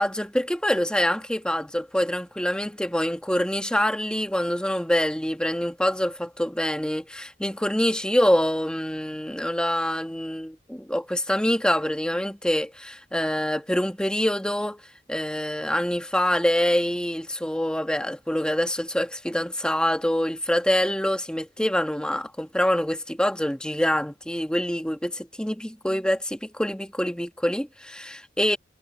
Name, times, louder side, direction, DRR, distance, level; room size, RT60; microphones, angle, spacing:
voice 1, 0.0-14.8 15.1-28.6, equal, 5° left, 1.5 m, -25 dB
head